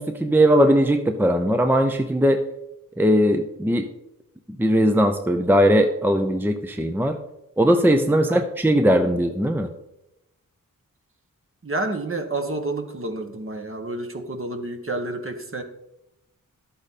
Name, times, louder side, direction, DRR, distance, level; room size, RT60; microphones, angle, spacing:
voice 1, 0.0-2.4 3.0-3.9 4.6-7.2 7.6-9.7, equal, 5° right, 7 dB, 0.7 m, -19 dB
voice 2, 8.1-8.4 11.6-15.6, right 2 dB, 40° right, 5 dB, 1.5 m, -29 dB
12.0 x 8.6 x 4.3 m, 0.89 s
wide cardioid pair, 100°, 33 cm